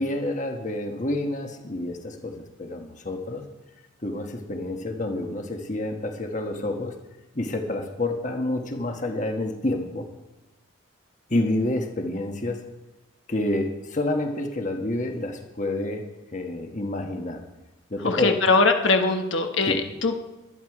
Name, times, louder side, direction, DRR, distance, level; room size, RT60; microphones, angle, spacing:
voice 1, 0.0-3.4 4.0-6.9 7.3-10.1 11.3-12.6 13.3-16.0 16.3-17.4 17.9-18.3 19.7-19.8, left 1 dB, 35° left, 4 dB, 1.4 m, -28 dB
voice 2, 18.0-20.2, left 3 dB, 70° left, 5 dB, 1.2 m, -21 dB
22.5 x 9.6 x 4.9 m, 1.0 s
head